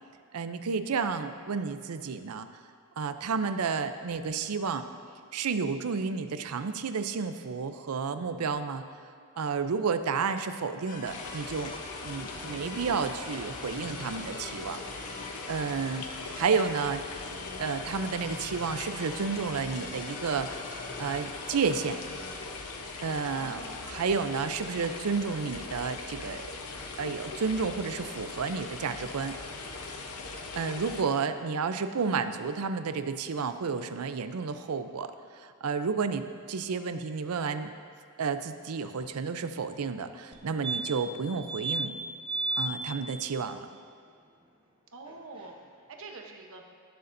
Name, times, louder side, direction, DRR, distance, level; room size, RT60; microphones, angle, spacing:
voice 1, 0.3-2.5 3.0-4.8 5.3-8.8 9.4-11.7 12.0-14.8 15.5-17.0 17.6-20.6 21.0-22.0 23.0-26.5 27.0-29.4 30.6-35.1 35.4-37.7 38.2-41.9 42.6-43.7, right 5 dB, 85° right, 10 dB, 0.5 m, -31 dB
sound 1, 10.9-22.6, left 3 dB, 40° left, 0.8 m, -45 dB
sound 2, 11.1-31.0, left 3 dB, 85° left, 0.9 m, -40 dB
voice 2, 23.3-24.1 31.9-32.0 44.9-45.6 46.0-46.6, right 2 dB, 65° right, 2 dB, 1.0 m, -46 dB
sound 3, 40.3-40.4 40.6-41.1 41.5-41.9 42.3-42.7 45.1-45.2 45.4-45.5, right 3 dB, 25° right, 1.1 m, -31 dB
17.5 x 6.9 x 2.6 m, 2.1 s
head